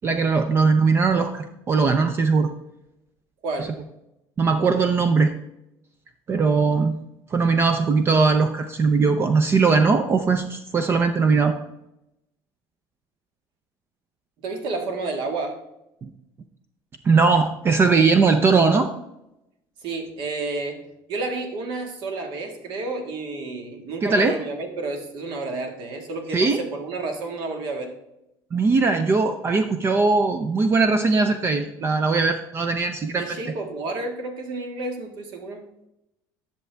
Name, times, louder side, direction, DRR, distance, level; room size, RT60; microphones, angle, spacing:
voice 1, 0.0-2.5 4.4-5.3 6.3-7.0 7.3-11.6 16.0-16.1 17.0-18.9 24.0-24.4 26.3-26.6 28.5-33.3, right 4 dB, 25° right, 8 dB, 0.5 m, -20 dB
voice 2, 3.4-3.8 14.4-15.6 19.8-20.8 21.1-27.9 33.2-35.6, right 3 dB, 60° right, 4 dB, 1.7 m, -30 dB
10.5 x 6.6 x 3.4 m, 0.87 s
cardioid pair, 145°, 9 cm